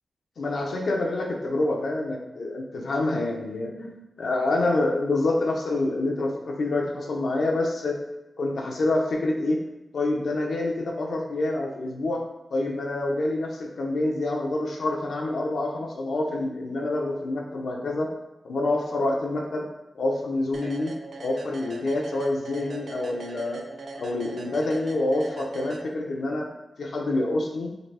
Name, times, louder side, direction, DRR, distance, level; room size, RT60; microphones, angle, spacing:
voice 1, 0.4-8.0 8.4-9.6 9.9-12.2 12.5-18.1 18.4-19.6 19.9-20.9 21.2-23.6 24.0-26.5 26.8-27.7, left 2 dB, 85° left, 0 dB, 0.6 m, -27 dB
sound 1, 20.5-26.3, right 3 dB, 80° right, 0.3 m, -40 dB
3.9 x 2.5 x 3.3 m, 0.97 s
wide cardioid pair, 90°, 0 cm